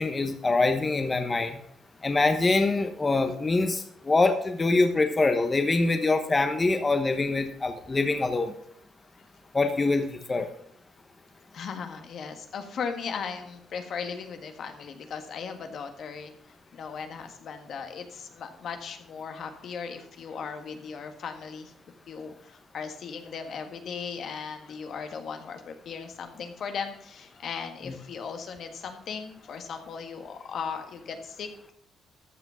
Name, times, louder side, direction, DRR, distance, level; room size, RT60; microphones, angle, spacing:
voice 1, 0.0-1.6 2.0-8.5 9.5-10.5, left 3 dB, 25° left, 7 dB, 1.1 m, -24 dB
voice 2, 11.5-21.7 22.1-31.7, left 6 dB, 65° left, 6 dB, 1.5 m, -37 dB
13.5 x 6.0 x 5.6 m, 0.67 s
cardioid pair, 90°, 0 cm